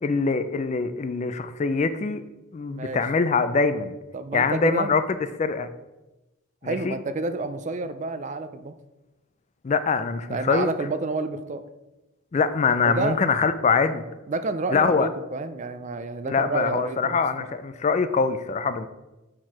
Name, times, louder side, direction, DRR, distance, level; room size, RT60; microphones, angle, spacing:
voice 1, 0.0-2.2 2.5-3.9 4.3-5.0 5.4-5.7 6.6-7.0 9.6-10.7 12.3-14.0 14.7-15.1 16.2-18.9, left 4 dB, 35° left, 11 dB, 0.3 m, -23 dB
voice 2, 4.1-5.0 6.6-8.7 10.3-11.6 12.8-13.2 14.3-17.2, right 3 dB, 35° right, 11 dB, 0.4 m, -29 dB
6.0 x 4.5 x 4.7 m, 1.0 s
head